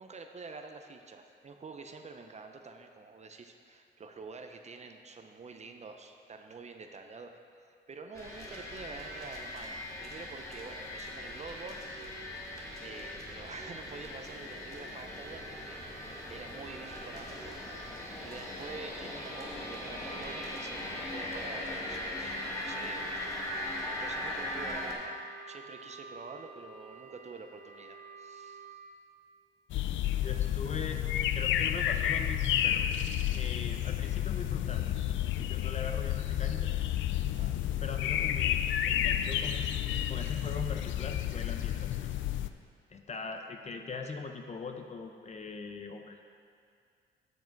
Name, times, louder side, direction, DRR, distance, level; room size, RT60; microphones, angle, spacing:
voice 1, 0.0-11.8 12.8-15.8 16.1-17.5 17.7-28.8 37.4-37.6 43.4-43.5, right 4 dB, 35° right, 5 dB, 0.7 m, -47 dB
sound 1, 8.1-24.9, left 1 dB, 15° left, 2.1 m, -39 dB
Wind instrument woodwind instrument, 22.1-28.8, right 4 dB, 50° right, 1.3 m, -50 dB
sound 2, 29.7-42.5, left 11 dB, 75° left, 0.4 m, -31 dB
voice 2, 30.2-31.0 31.3-32.9 33.3-36.7 37.8-39.8 40.1-42.0 42.9-46.2, left 4 dB, 35° left, 5 dB, 0.7 m, -41 dB
8.1 x 7.1 x 4.6 m, 2.3 s
cardioid pair, 90°, 20 cm